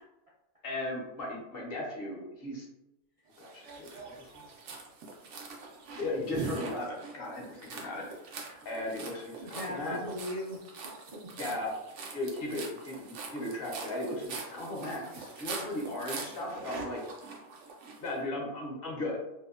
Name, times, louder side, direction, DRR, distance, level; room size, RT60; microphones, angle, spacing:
voice 1, 0.6-2.7 3.4-4.4 6.0-10.0 11.4-11.7 12.1-17.0 18.0-19.2, left 1 dB, 60° left, -2 dB, 0.9 m, -37 dB
sound 1, 3.4-18.1, right 4 dB, 90° right, 0.9 m, -43 dB
voice 2, 9.4-11.4, left 1 dB, 60° right, -5 dB, 0.3 m, -40 dB
2.7 x 2.0 x 2.3 m, 0.91 s
omnidirectional pair, 1.2 m